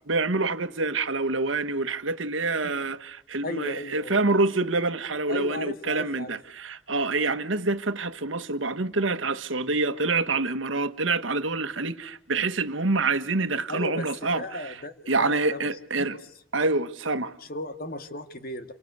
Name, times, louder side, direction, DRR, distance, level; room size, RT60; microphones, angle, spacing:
voice 1, 0.1-14.7 15.1-16.2 16.5-17.3, right 3 dB, 80° right, 1.5 m, -26 dB
voice 2, 3.4-4.2 5.3-6.4 13.7-15.7 16.1-16.2 17.4-18.7, left 1 dB, 50° left, 2.0 m, -35 dB
29.5 x 24.0 x 8.2 m
head